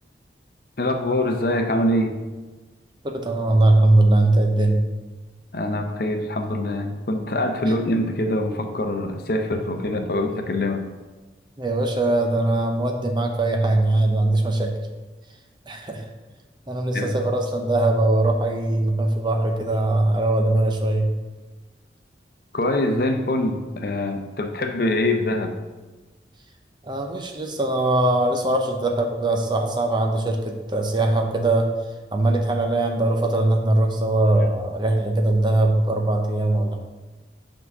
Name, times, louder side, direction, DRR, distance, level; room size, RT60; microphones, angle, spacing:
voice 1, 0.8-2.2 5.5-10.9 16.9-17.1 22.5-25.5, left 1 dB, 55° left, 5 dB, 0.6 m, -24 dB
voice 2, 3.0-4.8 7.6-7.7 11.6-14.7 15.7-16.1 16.7-21.1 26.8-31.7 32.1-36.8, right 2 dB, 25° right, 3 dB, 0.6 m, -21 dB
5.9 x 3.8 x 5.9 m, 1.2 s
head